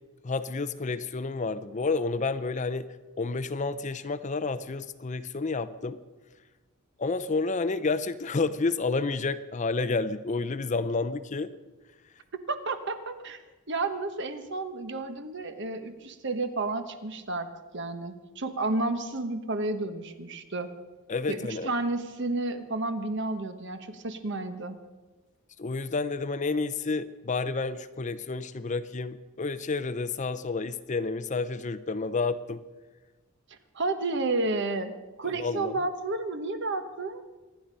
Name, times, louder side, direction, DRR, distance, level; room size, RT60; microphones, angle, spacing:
voice 1, 0.2-2.9 3.2-6.0 7.0-11.5 21.1-21.7 25.6-32.6 35.3-35.7, left 3 dB, 35° left, 13 dB, 0.6 m, -30 dB
voice 2, 12.5-13.4 13.7-20.7 21.3-24.8 33.7-34.9 35.2-37.2, right 2 dB, 60° right, 9 dB, 1.2 m, -31 dB
25.0 x 10.0 x 5.4 m, 1.2 s
head